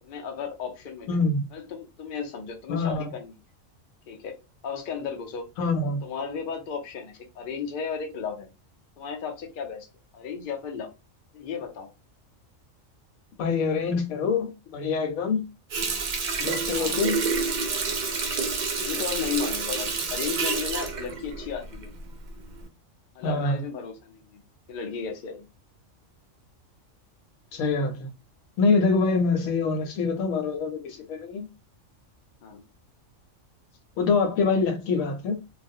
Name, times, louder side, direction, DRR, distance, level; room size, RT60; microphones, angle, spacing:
voice 1, 0.0-1.2 1.5-3.3 4.1-4.4 4.6-5.4 6.0-8.5 9.0-9.9 10.1-10.9 11.3-11.9 16.7-17.0 18.8-21.9 23.1-24.4 24.7-25.5 32.4-32.6, left 6 dB, 55° left, 0.6 m, -34 dB
voice 2, 1.1-1.5 2.7-3.1 5.6-6.0 13.4-15.4 16.4-17.3 23.2-23.5 27.5-28.1 28.6-31.5 34.0-35.4, left 4 dB, 90° left, 1.0 m, -25 dB
Water tap faucet, 15.7-22.1 22.5-22.6, right 4 dB, 90° right, 0.4 m, -28 dB
2.4 x 2.0 x 2.6 m
omnidirectional pair, 1.4 m